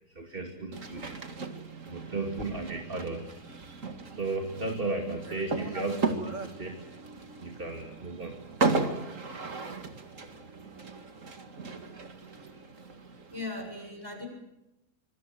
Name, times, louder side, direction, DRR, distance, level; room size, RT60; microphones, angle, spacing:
voice 1, 0.1-1.2 1.9-3.4 4.1-6.9 7.4-8.4, right 2 dB, 35° right, 3 dB, 2.8 m, -35 dB
sound 1, 0.7-13.6, right 3 dB, 50° right, 2.4 m, -36 dB
voice 2, 13.2-14.3, left 2 dB, 15° right, 3 dB, 7.4 m, -38 dB
25.5 x 24.5 x 7.8 m, 0.90 s
omnidirectional pair, 1.7 m